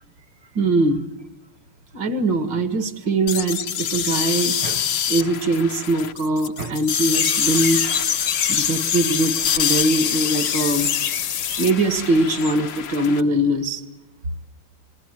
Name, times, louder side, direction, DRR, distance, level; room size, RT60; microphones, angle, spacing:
voice 1, 0.6-1.1 1.9-7.8 8.5-10.9 11.6-13.8, right 2 dB, 55° right, 9 dB, 2.4 m, -22 dB
sound 1, 3.3-13.2, left 9 dB, 75° left, 2.0 m, -25 dB
sound 2, 7.1-12.5, left 7 dB, 60° left, 1.7 m, -28 dB
28.5 x 20.5 x 9.1 m, 0.94 s
omnidirectional pair, 2.4 m